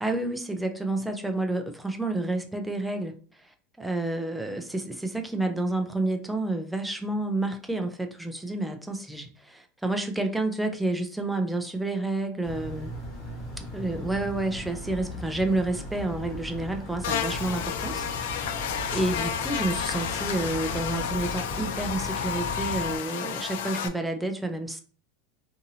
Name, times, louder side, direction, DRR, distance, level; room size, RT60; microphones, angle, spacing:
voice 1, 0.0-3.5 3.8-12.9 13.7-24.8, right 2 dB, 5° right, 0.3 m, -30 dB
sound 1, 12.4-23.0, left 1 dB, 35° left, 1.3 m, -38 dB
Buzz, 17.0-23.9, left 8 dB, 75° left, 0.4 m, -31 dB
2.6 x 2.6 x 2.7 m
supercardioid pair, 140°, 0 cm